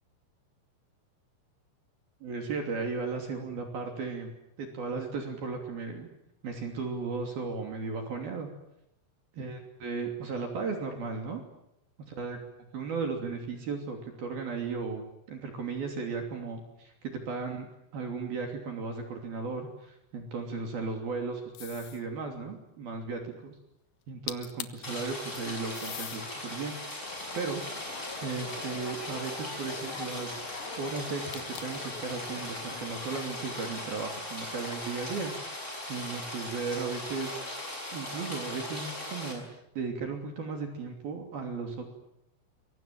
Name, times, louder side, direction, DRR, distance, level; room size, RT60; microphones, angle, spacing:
voice 1, 2.2-4.3 4.6-6.1 6.4-8.5 9.4-11.4 12.1-12.4 12.7-17.7 17.9-23.5 24.1-27.6 28.2-30.4 30.8-37.4 37.9-41.8, right 4 dB, 50° right, 4 dB, 4.4 m, -36 dB
sound 1, 21.6-22.1 24.0-24.1 24.3-24.9 25.7-26.2 26.9-28.4 31.3-31.9, left 12 dB, 75° left, 2.1 m, -42 dB
Rain, 24.8-39.3, left 1 dB, 15° left, 6.1 m, -39 dB
sound 2, 27.0-33.6, left 5 dB, 50° left, 1.6 m, -45 dB
26.0 x 23.0 x 9.3 m, 0.81 s
omnidirectional pair, 6.0 m